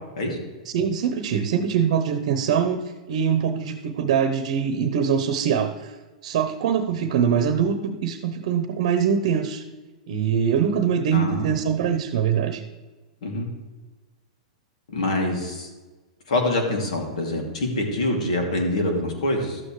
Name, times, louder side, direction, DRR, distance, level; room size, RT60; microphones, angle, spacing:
voice 1, 0.6-2.8 3.1-5.9 6.2-9.6 10.1-12.6, right 7 dB, 65° right, 9 dB, 0.9 m, -23 dB
voice 2, 11.1-11.5 13.2-13.5 14.9-15.7 16.3-19.6, left 1 dB, 75° left, 2 dB, 2.7 m, -25 dB
12.5 x 8.5 x 3.3 m, 1.2 s
hypercardioid pair, 125°, 4 cm